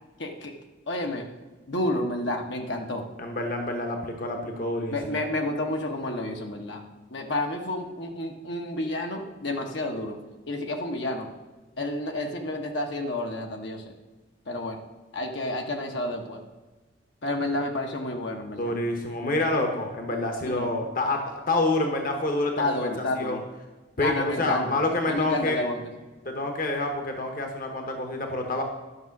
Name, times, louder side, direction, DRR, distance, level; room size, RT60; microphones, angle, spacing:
voice 1, 0.2-0.5 0.9-1.2 1.7-3.1 4.9-6.8 7.1-10.2 10.5-11.3 11.8-13.9 14.5-14.8 15.1-16.4 17.2-18.7 20.4-20.7 22.6-23.4 24.0-24.8 25.1-25.9, left 1 dB, 70° left, 2 dB, 1.3 m, -30 dB
voice 2, 3.2-5.2 18.6-23.4 24.0-25.6 26.2-28.6, left 2 dB, 45° left, 4 dB, 1.1 m, -28 dB
11.0 x 6.1 x 6.0 m, 1.3 s
head